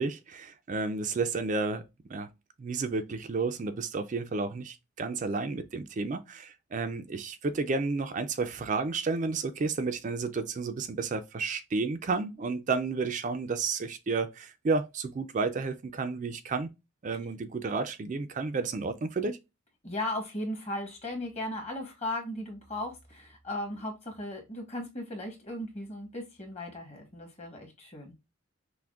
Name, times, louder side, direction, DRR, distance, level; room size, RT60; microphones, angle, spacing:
voice 1, 0.0-1.8 2.1-2.3 2.6-16.7 17.0-19.4, right 4 dB, 40° right, 0.3 m, -31 dB
voice 2, 19.8-28.1, left 1 dB, 30° left, 1.3 m, -37 dB
5.8 x 2.1 x 2.3 m
head